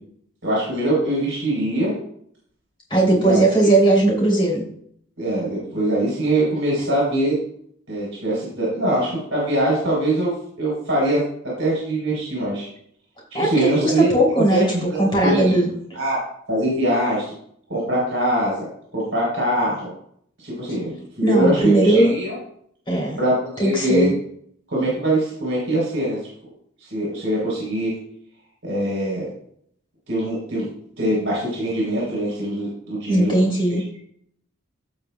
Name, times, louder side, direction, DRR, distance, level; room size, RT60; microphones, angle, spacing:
voice 1, 0.4-1.9 3.1-3.7 5.2-7.4 7.9-11.2 11.6-12.7 13.4-14.1 14.5-14.6 14.9-15.4 15.9-17.3 17.7-18.7 18.9-19.9 20.4-22.3 23.2-24.1 24.7-26.2 26.8-28.0 28.6-29.3 30.1-30.7 31.0-33.4, right 1 dB, 65° right, -5 dB, 3.8 m, -23 dB
voice 2, 2.9-4.6 13.3-15.7 21.2-22.1 22.9-23.2 23.6-24.1 33.1-33.8, right 1 dB, 25° left, -3 dB, 3.1 m, -18 dB
16.0 x 5.6 x 2.3 m, 0.66 s
head